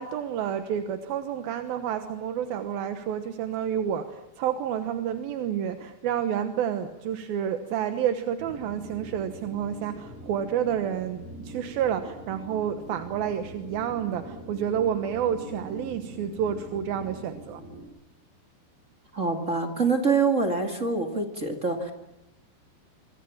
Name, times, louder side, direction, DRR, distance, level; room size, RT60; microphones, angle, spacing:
voice 1, 0.0-17.6, right 9 dB, 65° right, 8 dB, 2.6 m, -29 dB
sound 1, 8.4-17.8, equal, 30° left, 6.5 m, -44 dB
voice 2, 19.1-21.9, right 4 dB, 30° right, 5 dB, 1.5 m, -25 dB
26.5 x 25.0 x 7.3 m, 0.92 s
omnidirectional pair, 5.4 m